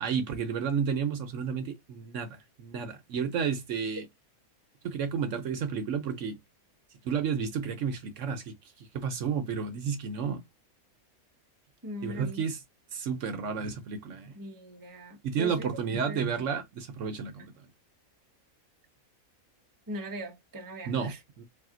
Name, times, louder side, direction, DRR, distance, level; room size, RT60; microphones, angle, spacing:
voice 1, 0.0-4.1 4.8-6.4 7.0-10.4 12.0-12.6 12.9-14.3 15.2-17.5 20.8-21.4, right 6 dB, 65° right, 1.0 m, -32 dB
voice 2, 11.8-12.4 14.3-16.2 17.4-17.5 19.9-21.2, equal, 20° right, 0.7 m, -40 dB
3.6 x 2.7 x 3.7 m
omnidirectional pair, 1.5 m